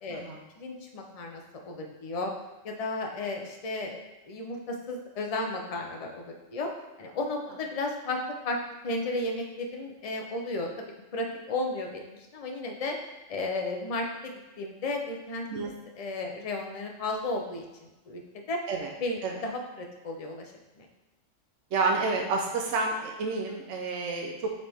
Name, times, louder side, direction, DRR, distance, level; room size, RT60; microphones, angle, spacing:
voice 1, 0.6-2.3 2.6-4.0 4.2-6.7 7.0-8.6 8.8-12.9 13.3-15.5 16.0-18.6 19.0-20.9, left 2 dB, 35° left, 2 dB, 0.7 m, -34 dB
voice 2, 21.7-24.5, right 3 dB, 70° right, 1 dB, 1.0 m, -29 dB
7.4 x 4.1 x 3.5 m, 1.1 s
omnidirectional pair, 1.3 m